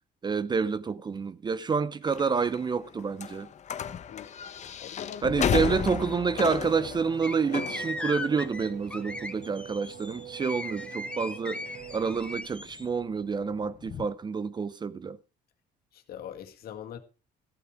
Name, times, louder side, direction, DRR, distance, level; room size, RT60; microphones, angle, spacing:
voice 1, 0.2-3.5 5.2-11.6 11.9-15.2, right 5 dB, 25° right, 0.6 m, -28 dB
sound 1, 2.1-14.1, left 8 dB, 45° left, 1.0 m, -36 dB
voice 2, 4.8-5.6 16.1-17.0, left 9 dB, 65° left, 2.0 m, -41 dB
Race car auto racing / Accelerating revving vroom, 5.4-12.7, right 9 dB, 40° right, 1.3 m, -46 dB
sound 2, 7.2-12.9, left 2 dB, 5° left, 1.2 m, -38 dB
14.5 x 8.5 x 4.9 m
cardioid pair, 110°, 17 cm